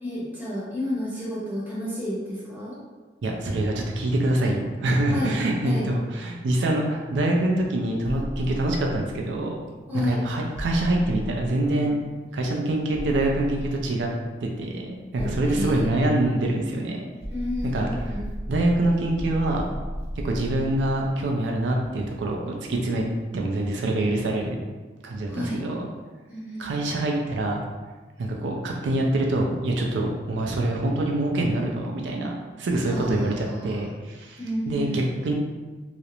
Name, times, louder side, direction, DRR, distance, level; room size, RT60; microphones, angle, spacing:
voice 1, 0.0-2.8 5.1-5.4 5.6-5.9 9.9-10.2 15.2-16.0 17.3-18.2 25.3-25.6 26.3-26.7 32.9-33.8 34.4-35.0, left 1 dB, 10° right, -8 dB, 0.7 m, -31 dB
voice 2, 3.2-9.6 9.9-14.1 14.4-17.0 17.7-17.9 18.5-19.7 20.2-23.0 23.3-24.6 25.0-25.9 26.6-27.6 28.2-34.4 34.7-35.3, right 1 dB, 85° right, 0 dB, 0.4 m, -25 dB
sound 1, 8.0-9.5 10.5-12.2 12.9-14.3 15.1-16.7 17.2-22.5, equal, 10° left, 1.3 m, -35 dB
2.4 x 2.0 x 2.9 m, 1.3 s
head